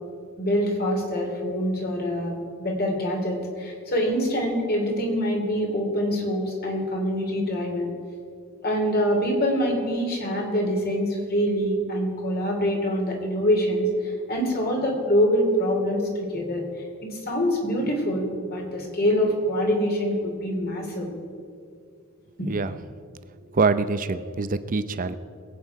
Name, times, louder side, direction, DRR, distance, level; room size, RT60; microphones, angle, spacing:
voice 1, 0.4-7.9 8.6-16.6 17.0-21.1 22.4-22.5, equal, 45° left, 0 dB, 2.9 m, -25 dB
voice 2, 23.5-25.1, right 4 dB, 40° right, 12 dB, 0.6 m, -24 dB
21.5 x 8.7 x 4.7 m, 2.2 s
head